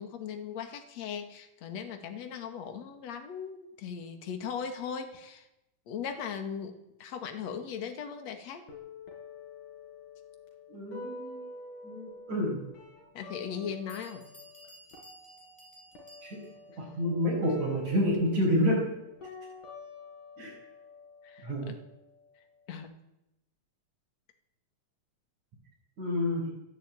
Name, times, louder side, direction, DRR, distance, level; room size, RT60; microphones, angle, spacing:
voice 1, 0.0-5.5 5.9-8.6 13.1-14.2 21.2-21.8 22.7-23.0, left 7 dB, 60° left, 6 dB, 3.1 m, -38 dB
sound 1, 8.7-14.7 14.9-22.7, left 4 dB, 75° left, 6.8 m, -48 dB
voice 2, 10.7-11.5 11.8-12.6 16.2-16.4 16.8-19.0 20.4-20.5 21.4-21.7 26.0-26.5, equal, 60° right, -6 dB, 6.9 m, -29 dB
Bell, 13.5-13.6 13.9-16.7, equal, ahead, 5.8 m, -55 dB
27.5 x 11.5 x 8.9 m, 0.89 s
omnidirectional pair, 3.7 m